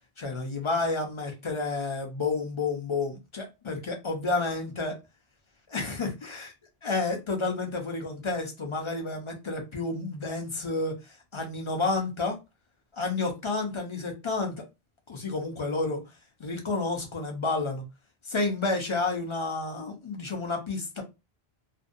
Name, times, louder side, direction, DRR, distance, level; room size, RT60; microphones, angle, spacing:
voice 1, 0.2-5.0 5.7-6.5 6.8-11.0 11.3-12.4 13.0-14.6 15.1-16.0 16.4-17.8 18.3-21.0, left 3 dB, 35° left, 2 dB, 0.6 m, -30 dB
2.6 x 2.2 x 2.5 m, 0.25 s
omnidirectional pair, 1.1 m